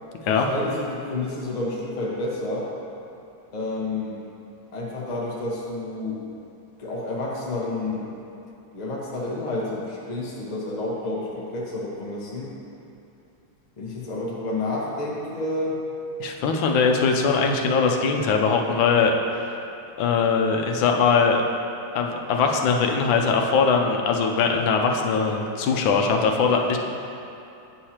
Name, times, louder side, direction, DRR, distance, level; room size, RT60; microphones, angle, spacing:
voice 1, 0.2-2.7 3.5-4.2 4.7-6.2 6.8-8.1 8.7-12.5 13.8-15.8, left 2 dB, 30° left, -4 dB, 0.8 m, -29 dB
voice 2, 16.2-19.6 20.0-21.4 21.9-26.8, left 5 dB, 90° left, 2 dB, 1.4 m, -21 dB
8.7 x 6.4 x 2.9 m, 2.7 s
omnidirectional pair, 2.1 m